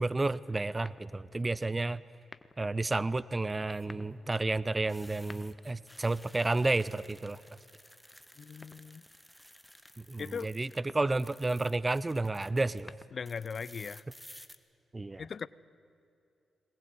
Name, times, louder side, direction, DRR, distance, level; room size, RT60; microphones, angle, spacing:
voice 1, 0.0-2.0 2.6-7.4 10.0-13.0 14.9-15.2, right 2 dB, 30° right, 19 dB, 0.7 m, -31 dB
sound 1, 0.9-1.4 2.2-2.8 3.7-4.2 5.0-5.8 6.7-7.6 8.6-9.2 10.7-11.2 12.5-13.4, left 3 dB, 30° left, 1.2 m, -53 dB
sound 2, 1.2-1.7 3.5-10.8 11.1-12.8 13.3-14.6, equal, ahead, 1.8 m, -55 dB
voice 2, 8.4-9.0 10.2-10.5 13.1-14.0 15.2-15.5, left 6 dB, 60° left, 19 dB, 0.6 m, -39 dB
22.5 x 20.0 x 9.4 m, 2.6 s
supercardioid pair, 50°, 0 cm